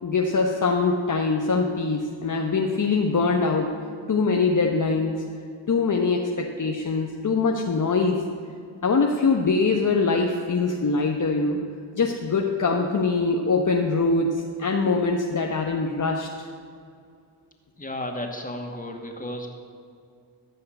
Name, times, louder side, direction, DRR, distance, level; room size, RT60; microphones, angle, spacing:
voice 1, 0.0-3.8 4.1-5.2 5.7-8.2 8.8-16.5, left 4 dB, 40° left, 1 dB, 1.2 m, -23 dB
voice 2, 17.8-19.5, left 1 dB, 15° left, 2 dB, 2.3 m, -33 dB
14.5 x 5.6 x 7.8 m, 2.3 s
supercardioid pair, 50°, 48 cm